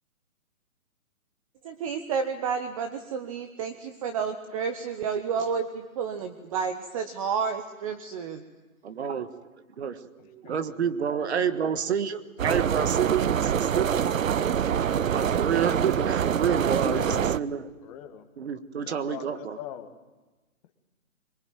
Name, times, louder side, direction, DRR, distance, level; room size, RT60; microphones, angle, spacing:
voice 1, 1.6-8.4 10.3-10.6, right 6 dB, 25° right, 8 dB, 1.0 m, -31 dB
voice 2, 8.8-9.3 9.8-10.1 10.4-14.4 15.1-17.7 18.4-19.6, right 7 dB, 50° right, 10 dB, 1.6 m, -29 dB
voice 3, 10.2-10.8 11.2-11.5 16.7-17.3 17.8-18.3 18.9-19.9, left 10 dB, 25° left, 7 dB, 1.8 m, -41 dB
sound 1, 12.4-17.4, right 8 dB, 70° right, 0.8 m, -25 dB
23.0 x 21.5 x 9.1 m, 1.2 s
hypercardioid pair, 145°, 42 cm